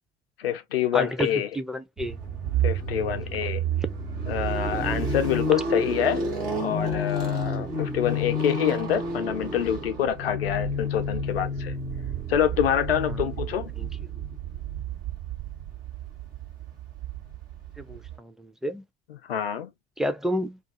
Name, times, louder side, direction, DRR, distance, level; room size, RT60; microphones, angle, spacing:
voice 1, 0.4-1.5 2.6-3.6 4.3-6.2 6.6-11.7 12.3-13.7 19.3-19.7, left 9 dB, 80° left, 0.5 m, -26 dB
voice 2, 0.9-1.3 1.5-2.2 13.1-13.4 13.8-13.9 17.8-18.8 20.0-20.6, equal, ahead, 0.5 m, -30 dB
sound 1, 2.0-18.2, right 1 dB, 75° right, 1.3 m, -30 dB
2.4 x 2.3 x 2.7 m
figure-of-eight pair, 50°, 29 cm